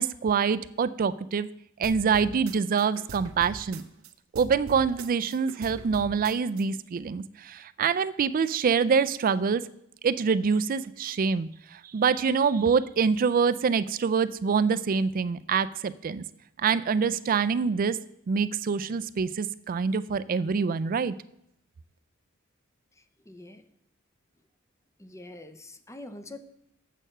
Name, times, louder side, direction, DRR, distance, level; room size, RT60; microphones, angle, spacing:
voice 1, 0.0-1.5 1.8-3.8 4.3-9.6 10.0-16.2 16.6-18.0 18.3-21.1, right 6 dB, 40° right, 15 dB, 0.4 m, -25 dB
sound 1, 1.8-4.1 4.4-6.6, right 3 dB, 80° right, 0.7 m, -42 dB
voice 2, 23.3-23.6 25.0-26.4, left 2 dB, 15° left, 9 dB, 0.6 m, -44 dB
7.6 x 6.6 x 6.5 m, 0.77 s
head